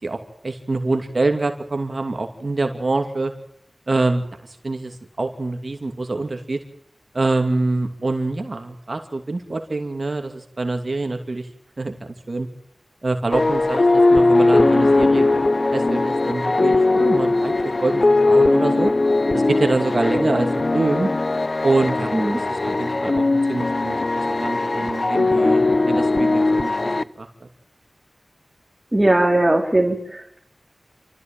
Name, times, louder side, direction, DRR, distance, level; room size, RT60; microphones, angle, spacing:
voice 1, 0.4-3.3 3.9-4.2 4.6-6.6 7.1-11.5 11.8-12.5 13.0-15.4 15.7-17.5 17.8-18.9 19.3-20.5 20.7-21.1 21.6-26.9 27.2-27.3, right 2 dB, 55° right, 5 dB, 2.7 m, -25 dB
sound 1, 13.3-27.0, left 2 dB, 45° left, 0.9 m, -19 dB
voice 2, 28.9-30.4, right 1 dB, 20° right, 1 dB, 3.6 m, -19 dB
29.0 x 14.0 x 9.1 m, 0.67 s
wide cardioid pair, 65°, 0 cm